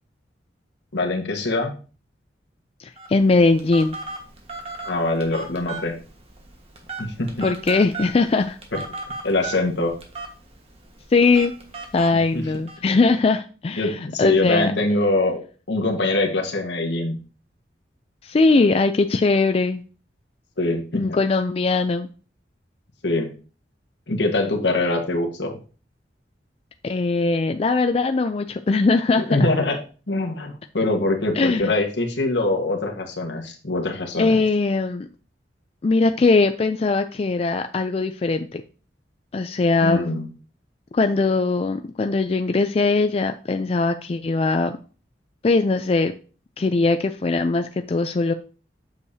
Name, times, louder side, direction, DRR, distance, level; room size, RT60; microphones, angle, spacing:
voice 1, 0.9-1.7 4.8-6.0 7.0-7.5 9.2-10.0 12.1-12.4 13.8-15.4 15.7-17.2 20.6-21.2 23.0-23.3 24.1-25.6 29.3-29.8 30.1-34.4 39.8-40.3, left 2 dB, 75° left, 2 dB, 1.5 m, -23 dB
voice 2, 2.8-4.0 7.4-8.6 11.1-11.5 11.9-14.7 18.2-19.8 20.9-22.1 26.8-29.2 31.3-31.7 34.2-35.1 35.8-38.6 39.3-40.1 40.9-44.8 45.4-46.1 46.6-48.3, left 3 dB, 35° left, 8 dB, 0.3 m, -20 dB
Telephone, 3.0-12.8, right 3 dB, 35° right, 1.4 m, -37 dB
8.1 x 6.5 x 2.8 m, 0.37 s
head